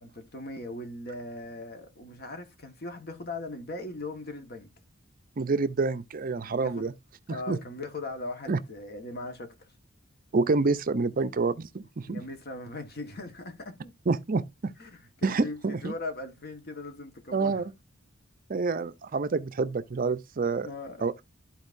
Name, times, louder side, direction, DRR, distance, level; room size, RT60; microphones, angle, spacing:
voice 1, 0.0-4.7 6.4-6.9 7.3-9.7 12.1-13.9 14.8-17.6 20.6-21.0, left 2 dB, 50° left, 1.5 m, -39 dB
voice 2, 5.4-6.9 7.3-7.6 8.5-8.6 10.3-12.2 14.1-14.7 15.2-15.9 17.3-17.6 18.5-20.7 21.0-21.2, right 4 dB, 45° right, 0.5 m, -27 dB
13.0 x 4.5 x 2.6 m
head